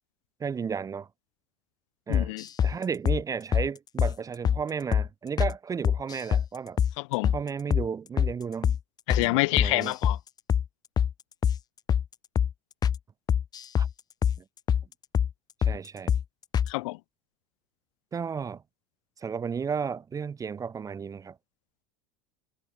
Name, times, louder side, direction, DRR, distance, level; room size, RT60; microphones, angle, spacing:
voice 1, 0.4-1.1 2.1-2.3 2.6-6.8 7.3-8.8 9.2-9.9 13.8-13.9 14.4-14.5 15.6-16.1 18.1-18.6 19.2-21.4, right 6 dB, 20° right, 0.7 m, -33 dB
voice 2, 2.1-2.4 7.0-7.3 9.1-10.2 16.7-17.0, left 24 dB, 75° left, 1.0 m, -27 dB
sound 1, 2.1-2.7 3.1-3.2 3.5-3.7 4.0-4.1 4.4-4.6 4.9-5.1 5.4-5.5 5.8-6.5 6.8-6.9 7.2-7.4 7.7-7.9 8.2-8.3 8.6-8.8 9.1-9.3 9.6-10.2 10.5-10.7 11.0-11.1 11.4-11.6 11.9-12.1 12.4-12.5 12.8-13.0 13.3-13.9 14.2-14.4 14.7-14.8 15.1-15.3 15.6-15.8 16.1-16.2 16.5-16.7, left 8 dB, 25° left, 0.5 m, -24 dB
supercardioid pair, 110°, 16 cm